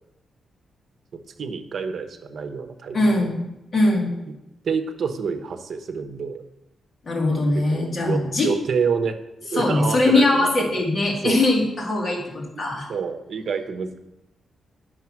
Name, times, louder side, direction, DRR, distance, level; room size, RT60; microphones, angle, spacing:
voice 1, 1.1-3.3 4.6-6.4 7.3-7.4 7.7-10.7 11.2-11.5 12.9-14.0, right 5 dB, 55° right, 8 dB, 1.0 m, -28 dB
voice 2, 2.9-3.4 3.7-4.1 7.0-8.5 9.5-12.9, left 2 dB, 35° left, -2 dB, 2.2 m, -21 dB
9.2 x 6.6 x 6.0 m, 0.88 s
wide cardioid pair, 145°, 0 cm